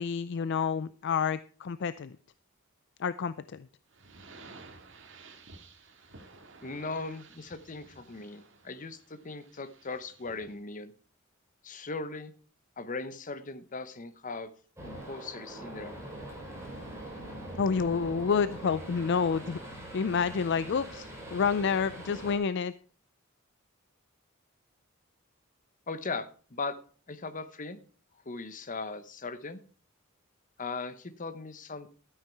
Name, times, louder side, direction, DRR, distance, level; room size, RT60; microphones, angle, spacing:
voice 1, 0.0-2.2 3.0-3.7 17.6-19.6 19.9-22.7, left 6 dB, 60° left, 15 dB, 0.4 m, -29 dB
sound 1, 3.9-10.6, right 3 dB, 65° right, 1.9 m, -53 dB
voice 2, 6.6-10.9 11.6-12.3 12.8-14.5 14.8-16.0 25.9-26.8 27.1-27.8 28.3-29.6 30.6-31.9, left 3 dB, 40° left, 12 dB, 1.0 m, -38 dB
sound 2, 14.8-22.4, right 1 dB, 15° right, 5.9 m, -43 dB
12.5 x 9.3 x 4.6 m, 0.40 s
head